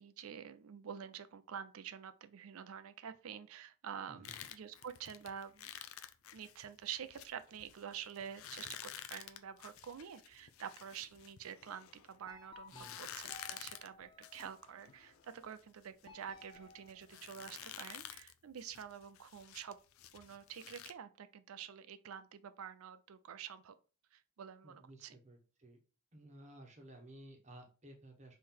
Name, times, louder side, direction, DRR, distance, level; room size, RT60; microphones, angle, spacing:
voice 1, 0.0-5.7 6.3-19.8 20.1-23.7 24.1-25.2, right 8 dB, 90° right, 0.5 m, -48 dB
voice 2, 4.0-4.4 12.7-13.2 24.6-25.8 26.1-28.4, right 1 dB, 35° right, 1.0 m, -56 dB
sound 1, 4.2-12.2 12.7-20.9, left 10 dB, 80° left, 0.4 m, -51 dB
sound 2, 12.2-14.9 16.0-17.8, left 2 dB, 20° left, 0.6 m, -58 dB
3.8 x 3.1 x 4.4 m
head